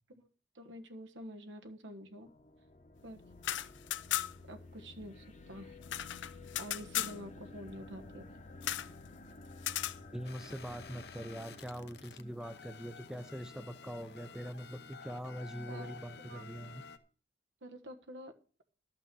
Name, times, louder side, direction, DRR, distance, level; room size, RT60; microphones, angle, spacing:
voice 1, 0.5-2.3 3.0-3.2 4.5-5.8 6.2-6.3 6.6-8.3 15.7-15.9 16.2-16.4 17.6-18.3, equal, 90° right, 6 dB, 1.3 m, -48 dB
sound 1, 2.2-12.8, left 2 dB, 40° left, 1.0 m, -53 dB
sound 2, 3.3-4.6 4.8-4.9 5.2-7.2 8.6-8.9 9.6-10.0, left 12 dB, 90° left, 0.5 m, -36 dB
voice 2, 10.1-16.8, equal, 5° right, 10 dB, 0.5 m, -43 dB
sound 3, 10.2-17.0, left 6 dB, 65° left, 0.8 m, -52 dB
12.5 x 5.9 x 6.8 m, 0.39 s
head